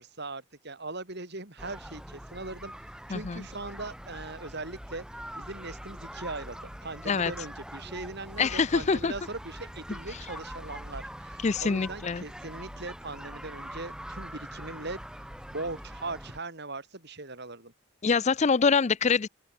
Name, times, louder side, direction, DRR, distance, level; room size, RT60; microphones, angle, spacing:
voice 1, 0.0-2.7 3.1-5.1 5.4-15.0 15.5-17.7, right 2 dB, 50° right, 3.6 m, -39 dB
sound 1, 1.6-16.4, equal, 5° right, 7.3 m, -43 dB
voice 2, 3.1-3.4 7.1-7.3 8.4-9.1 11.4-12.2 18.0-19.3, left 5 dB, 30° left, 0.4 m, -25 dB
open air
head